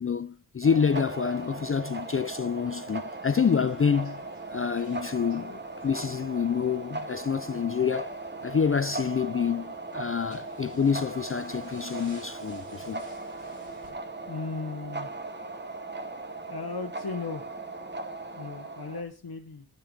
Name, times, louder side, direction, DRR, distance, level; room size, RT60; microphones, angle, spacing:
voice 1, 0.0-4.2 4.5-8.1 8.4-13.0, left 6 dB, 35° left, 0.4 m, -27 dB
sound 1, 0.6-19.0, right 2 dB, 25° right, 1.0 m, -38 dB
sound 2, 3.3-13.9, right 1 dB, 45° right, 2.9 m, -55 dB
voice 2, 14.3-15.1 16.5-17.5 18.2-19.7, left 4 dB, 65° left, 1.0 m, -36 dB
8.9 x 6.8 x 5.2 m
wide cardioid pair, 55°, 39 cm